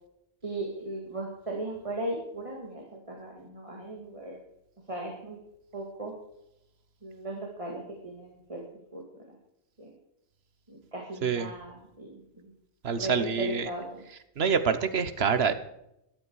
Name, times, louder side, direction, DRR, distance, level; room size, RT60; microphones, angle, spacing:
voice 1, 0.4-4.4 4.9-5.4 5.7-6.1 7.0-8.6 8.9-9.4 9.8-9.9 10.7-12.5 12.9-14.0, right 2 dB, 30° right, -1 dB, 2.3 m, -37 dB
voice 2, 11.2-11.5 12.8-13.7 14.1-15.5, right 6 dB, 70° right, 12 dB, 1.2 m, -27 dB
13.5 x 11.5 x 4.7 m, 0.81 s
omnidirectional pair, 1.1 m